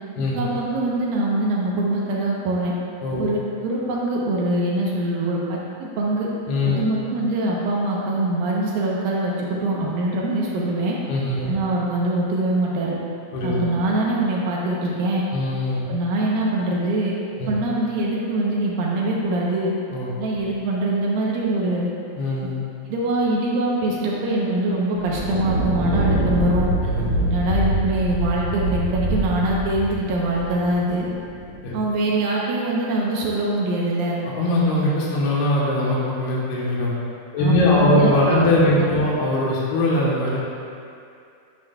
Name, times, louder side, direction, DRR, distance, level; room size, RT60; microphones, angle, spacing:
voice 1, 0.3-2.7 3.2-6.3 6.7-11.0 11.5-12.9 13.4-15.2 15.9-17.1 17.5-19.7 20.2-21.9 22.9-26.7 27.2-31.1 31.7-34.2 37.4-39.1, right 2 dB, 75° right, -4 dB, 2.5 m, -23 dB
voice 2, 11.1-11.5 13.3-13.6 15.3-15.8 17.4-17.5 19.9-20.1 22.2-22.6 26.8-27.0 31.6-31.7 34.2-36.9 37.3-40.4, left 1 dB, 85° left, -6 dB, 3.1 m, -21 dB
Thunder, 25.0-31.6, right 1 dB, 40° right, 2.3 m, -25 dB
9.3 x 9.0 x 2.3 m, 2.5 s
omnidirectional pair, 4.5 m